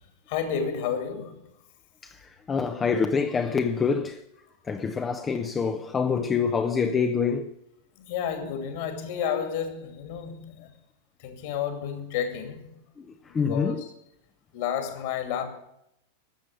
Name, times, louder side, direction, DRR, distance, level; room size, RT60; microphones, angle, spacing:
voice 1, 0.3-1.4 8.1-10.7 11.2-12.7 13.4-13.9 14.5-15.4, left 8 dB, 50° left, 2.6 m, -31 dB
voice 2, 2.0-4.2 4.7-7.5 13.0-13.1 13.3-13.8, left 5 dB, 20° left, 0.7 m, -26 dB
13.0 x 7.6 x 9.0 m
figure-of-eight pair, 90°, 0 cm